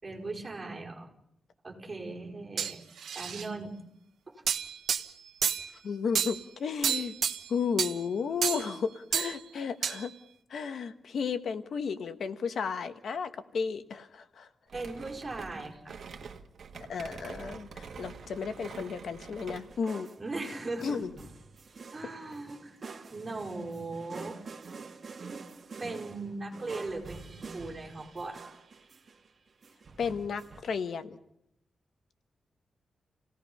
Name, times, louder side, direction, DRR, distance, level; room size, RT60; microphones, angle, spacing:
voice 1, 0.0-1.1 1.6-2.8 3.1-3.8 4.3-4.4 14.7-16.0 20.2-21.0 21.9-22.8 23.1-24.4 25.8-28.4, right 3 dB, 25° right, -1 dB, 5.2 m, -38 dB
sound 1, 2.6-3.5 4.5-5.7 6.1-6.4 6.8-7.5 7.8-7.9 8.4-8.8 9.1-9.3 9.8-10.0, right 8 dB, 80° right, 1.2 m, -30 dB
voice 2, 5.8-7.1 7.5-10.1 10.5-14.5 16.9-20.1 20.8-21.1 30.0-31.2, left 6 dB, 65° left, 10 dB, 1.2 m, -33 dB
sound 2, 14.7-19.9, right 5 dB, 65° right, 1.8 m, -46 dB
sound 3, 19.5-30.6, right 4 dB, 40° right, 2.2 m, -47 dB
29.5 x 17.5 x 5.6 m, 0.77 s
wide cardioid pair, 135°, 0 cm